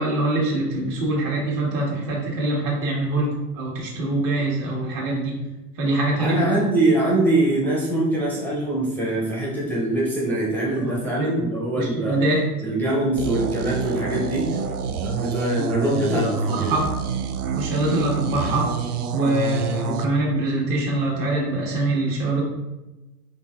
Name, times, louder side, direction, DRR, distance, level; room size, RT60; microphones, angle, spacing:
voice 1, 0.0-5.4 5.8-6.4 10.8-11.4 11.8-12.4 15.6-16.9 17.5-18.7 19.1-22.4, right 2 dB, 55° right, -2 dB, 1.4 m, -24 dB
voice 2, 6.2-12.2 12.6-14.5 15.0-16.8, right 1 dB, 5° left, -5 dB, 0.4 m, -23 dB
sound 1, 13.2-20.1, right 5 dB, 75° right, 0.5 m, -27 dB
3.8 x 3.6 x 2.3 m, 1.0 s
hypercardioid pair, 90°, 45 cm